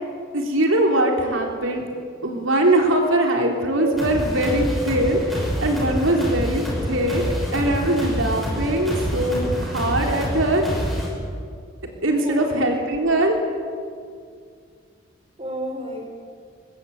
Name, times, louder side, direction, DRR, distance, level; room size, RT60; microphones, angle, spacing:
voice 1, 0.3-1.8 2.2-7.2 7.5-10.6 12.0-13.4, right 1 dB, 70° right, 2 dB, 3.6 m, -21 dB
sound 1, 4.0-11.1, equal, ahead, 6.0 m, -27 dB
voice 2, 12.2-13.2 15.4-16.1, equal, 25° right, 3 dB, 3.3 m, -31 dB
23.0 x 21.5 x 8.8 m, 2.2 s
head